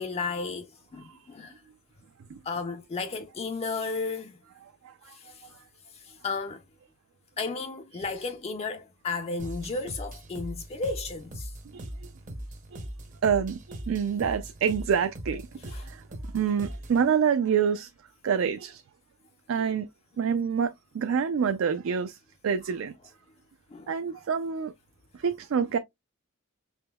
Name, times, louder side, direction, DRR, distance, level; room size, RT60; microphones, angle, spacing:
voice 1, 0.0-1.6 2.4-4.4 5.1-5.5 5.9-6.6 7.4-11.5 15.7-15.9 22.6-22.7 23.7-24.2, left 4 dB, 30° left, 0.3 m, -34 dB
sound 1, 9.4-17.1, right 1 dB, 35° right, 0.7 m, -40 dB
voice 2, 11.7-12.1 13.2-16.0 16.3-17.9 18.2-18.8 19.5-19.9 20.2-22.2 22.4-22.9 23.9-24.7 25.2-25.8, right 7 dB, 70° right, 0.3 m, -27 dB
5.0 x 2.9 x 2.2 m
head